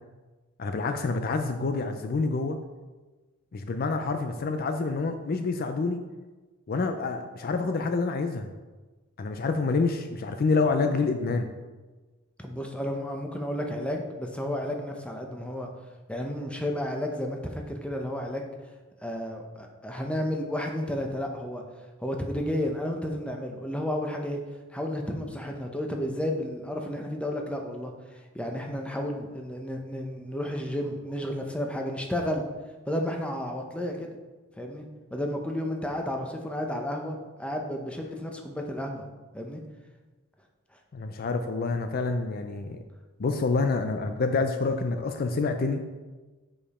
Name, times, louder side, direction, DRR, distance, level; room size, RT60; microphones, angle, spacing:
voice 1, 0.6-2.6 3.5-6.0 6.7-8.5 9.2-11.5 40.9-42.8 43.2-45.8, left 3 dB, 45° left, 7 dB, 0.4 m, -27 dB
voice 2, 12.4-15.7 16.1-18.5 19.0-21.6 22.0-24.4 24.7-27.9 28.3-32.4 32.9-34.1 34.6-34.8 35.1-39.0 39.3-39.6, left 1 dB, 5° left, 2 dB, 0.7 m, -32 dB
7.1 x 5.1 x 4.2 m, 1.2 s
head